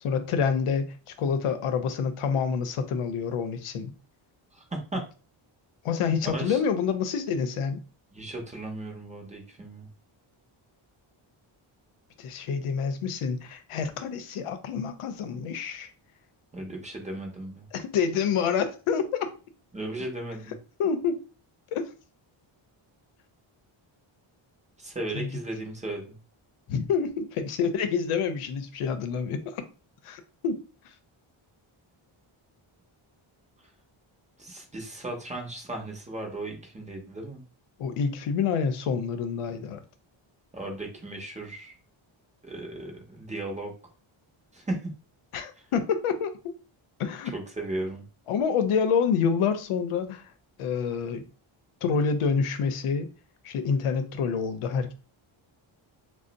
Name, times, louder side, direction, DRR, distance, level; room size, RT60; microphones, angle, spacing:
voice 1, 0.0-3.9 5.8-7.8 12.2-15.9 17.7-19.0 20.8-21.2 21.7-21.9 25.1-25.4 26.7-29.6 30.0-30.9 37.8-39.8 45.3-46.5 47.0-47.3 48.3-50.3 50.6-51.3 51.8-53.1 53.4-54.9, left 6 dB, 80° left, 0.6 m, -27 dB
voice 2, 4.5-5.0 6.3-6.6 8.1-9.9 16.5-17.7 19.7-20.6 24.8-26.2 34.4-37.4 40.5-41.8 42.4-43.7 44.5-44.8 47.2-48.0, right 2 dB, 15° right, 0.6 m, -36 dB
2.5 x 2.0 x 3.8 m
wide cardioid pair, 160°, 50 cm